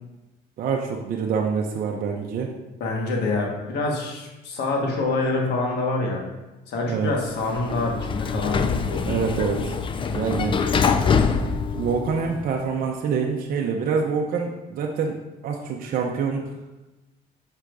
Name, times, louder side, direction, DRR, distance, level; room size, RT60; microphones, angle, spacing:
voice 1, 0.6-2.5 6.9-7.1 9.0-9.8 10.1-10.6 11.7-15.2 15.4-16.4, right 6 dB, 55° right, 0 dB, 0.7 m, -26 dB
voice 2, 2.8-6.2 6.7-9.2, left 2 dB, 80° left, -1 dB, 1.5 m, -26 dB
Sliding door, 7.3-12.5, left 5 dB, 30° left, 0.4 m, -24 dB
8.0 x 5.6 x 2.6 m, 1.0 s
cardioid pair, 110°, 17 cm